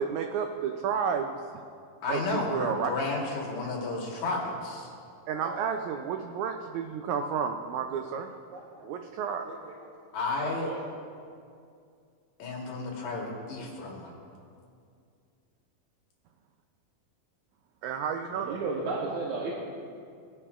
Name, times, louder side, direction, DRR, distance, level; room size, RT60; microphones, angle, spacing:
voice 1, 0.0-1.4 2.1-2.9 5.3-8.3 8.8-9.5 17.8-18.6, right 7 dB, 90° right, 5 dB, 1.6 m, -31 dB
voice 2, 2.0-4.9 10.1-10.7 12.4-14.1, left 3 dB, 60° left, -2 dB, 2.6 m, -32 dB
voice 3, 5.4-5.7 8.5-8.6 9.5-9.6 10.4-10.8 18.4-19.5, right 3 dB, 70° right, -2 dB, 2.0 m, -34 dB
18.5 x 9.9 x 2.4 m, 2.3 s
omnidirectional pair, 3.9 m